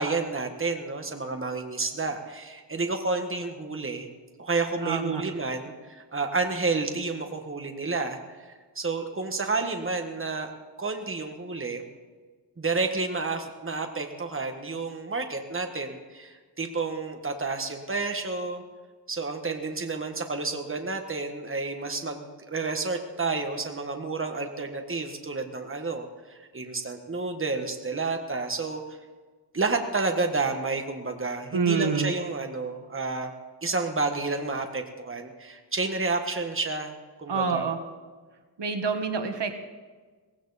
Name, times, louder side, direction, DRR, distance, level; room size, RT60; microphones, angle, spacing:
voice 1, 0.0-4.1 4.4-10.5 10.8-11.8 12.6-18.6 19.1-28.8 29.5-33.3 33.6-36.9 37.2-37.7, right 3 dB, 30° right, 5 dB, 1.5 m, -30 dB
voice 2, 4.8-5.2 31.5-32.1 37.3-37.8 38.6-39.5, right 5 dB, 80° right, 6 dB, 1.5 m, -27 dB
18.5 x 16.5 x 4.2 m, 1.4 s
wide cardioid pair, 115°, 41 cm